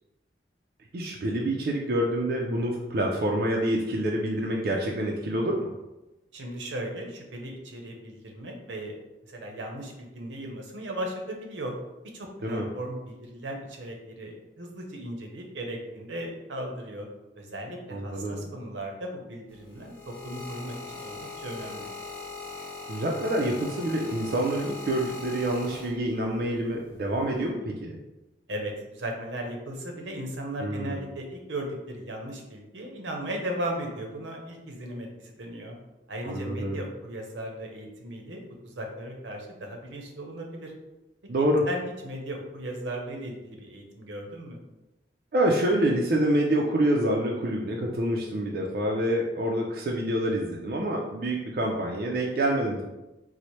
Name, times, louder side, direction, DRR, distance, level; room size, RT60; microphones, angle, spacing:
voice 1, 0.9-5.7 12.4-12.6 17.9-18.4 22.9-28.0 30.6-31.0 36.2-36.8 41.3-41.7 45.3-52.8, right 1 dB, 55° right, -1 dB, 0.4 m, -27 dB
voice 2, 6.3-8.9 9.2-11.7 12.1-17.1 17.4-21.9 28.5-35.8 36.1-40.7 41.4-44.6, right 1 dB, 85° right, 1 dB, 0.7 m, -37 dB
sound 1, 19.5-26.3 27.2-27.5, left 3 dB, 10° left, 0.6 m, -40 dB
4.2 x 2.0 x 3.0 m, 1.0 s
head